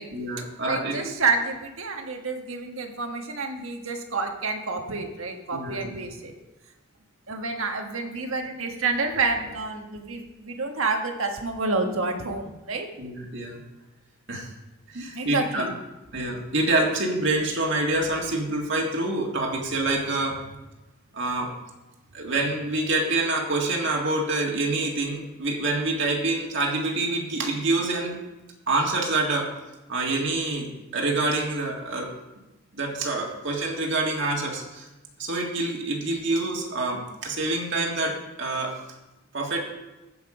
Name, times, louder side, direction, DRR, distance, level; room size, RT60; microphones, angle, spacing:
voice 1, 0.1-1.1 5.5-6.0 13.0-13.6 14.3-14.5 14.9-15.6 16.1-20.4 21.1-21.5 22.1-28.2 28.7-29.5 29.9-32.1 32.7-34.9 35.2-38.8 39.3-39.6, right 2 dB, 55° right, -1 dB, 1.8 m, -26 dB
voice 2, 0.6-6.3 7.3-12.9 14.9-15.7, right 3 dB, 70° right, 4 dB, 1.4 m, -29 dB
14.5 x 5.9 x 4.9 m, 1.1 s
head